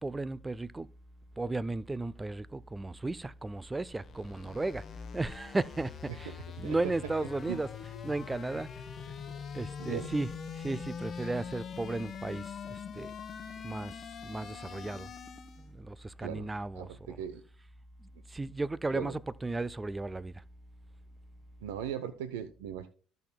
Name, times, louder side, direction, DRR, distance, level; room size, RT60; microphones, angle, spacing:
voice 1, 0.0-0.9 1.4-4.9 5.1-7.7 8.0-8.7 9.0-9.1 9.5-10.3 10.5-13.1 13.6-15.1 15.6-17.2 18.0-20.4, right 2 dB, 20° right, 0.4 m, -35 dB
sound 1, 3.5-15.7, left 7 dB, 45° left, 0.9 m, -43 dB
voice 2, 6.1-6.8 7.2-7.6 9.8-10.1 16.2-16.5 16.7-17.4 18.9-19.1 21.6-22.9, right 9 dB, 80° right, 0.6 m, -39 dB
14.0 x 5.7 x 2.2 m
hypercardioid pair, 60°, 0 cm